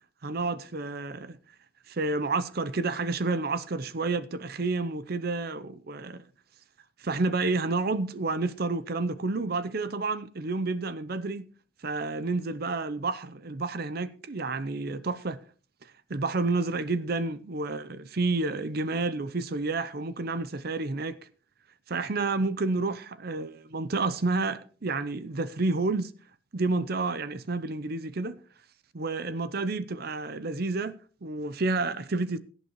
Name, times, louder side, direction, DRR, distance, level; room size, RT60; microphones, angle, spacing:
voice 1, 0.2-1.4 1.9-6.2 7.0-11.5 11.8-15.4 16.1-21.2 21.9-26.1 26.5-28.4 28.9-32.4, right 3 dB, 50° right, 0.6 m, -30 dB
17.5 x 11.0 x 3.0 m
head